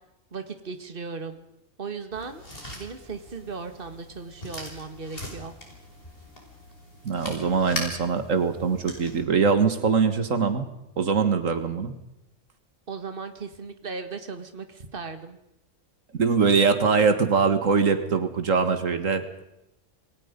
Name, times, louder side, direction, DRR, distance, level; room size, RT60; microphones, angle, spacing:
voice 1, 0.3-1.5 1.8-2.4 2.7-5.5 12.9-15.4, right 4 dB, 45° right, 8 dB, 2.1 m, -37 dB
sound 1, 2.1-9.2, left 1 dB, 45° left, 5.7 m, -40 dB
voice 2, 7.0-10.7 11.0-11.9 16.2-19.4, right 5 dB, 85° right, 9 dB, 2.1 m, -22 dB
28.0 x 21.5 x 5.3 m, 0.88 s
omnidirectional pair, 1.3 m